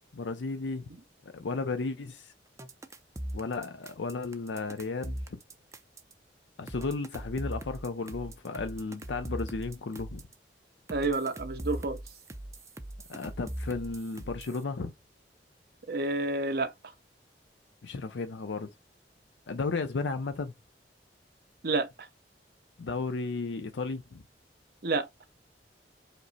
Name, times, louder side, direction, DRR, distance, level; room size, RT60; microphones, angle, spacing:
voice 1, 0.1-0.9 1.3-2.3 3.3-5.4 6.6-10.2 13.1-14.9 17.8-18.7 19.5-20.5 22.8-24.2, left 3 dB, 90° left, 0.5 m, -34 dB
sound 1, 2.6-6.1 6.7-10.3 10.9-14.6, right 1 dB, 15° right, 0.5 m, -40 dB
voice 2, 10.9-12.0 15.9-16.7 21.6-21.9 24.8-25.1, right 3 dB, 60° right, 0.8 m, -29 dB
5.2 x 2.1 x 4.0 m
head